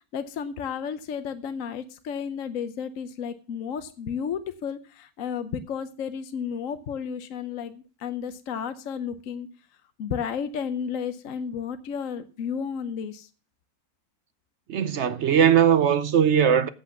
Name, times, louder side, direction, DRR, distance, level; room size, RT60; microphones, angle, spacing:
voice 1, 0.1-9.5 10.0-13.3, left 7 dB, 65° left, 1.1 m, -32 dB
voice 2, 14.7-16.7, right 8 dB, 60° right, 0.8 m, -19 dB
8.3 x 8.2 x 7.0 m
omnidirectional pair, 1.6 m